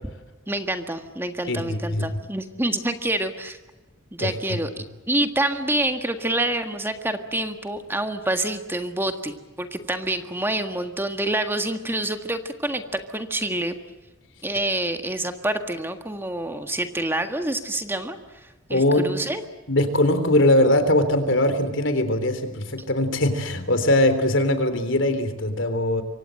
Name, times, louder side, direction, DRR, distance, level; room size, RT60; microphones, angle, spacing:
voice 1, 0.5-3.6 4.1-13.7 14.4-19.4, right 1 dB, 10° right, 7 dB, 1.7 m, -27 dB
voice 2, 1.5-2.0 4.2-4.3 18.7-19.1 19.7-26.0, left 1 dB, 65° left, 10 dB, 3.6 m, -21 dB
27.0 x 24.5 x 7.7 m, 1.1 s
head